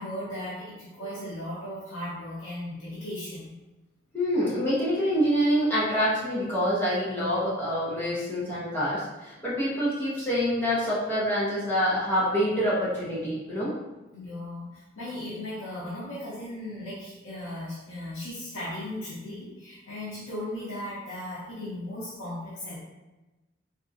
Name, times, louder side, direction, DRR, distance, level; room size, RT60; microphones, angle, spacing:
voice 1, 0.0-3.5 14.1-22.8, left 1 dB, 80° left, -8 dB, 0.8 m, -37 dB
voice 2, 4.1-13.7, equal, 10° left, -10 dB, 0.9 m, -26 dB
3.5 x 2.6 x 2.6 m, 1.1 s
head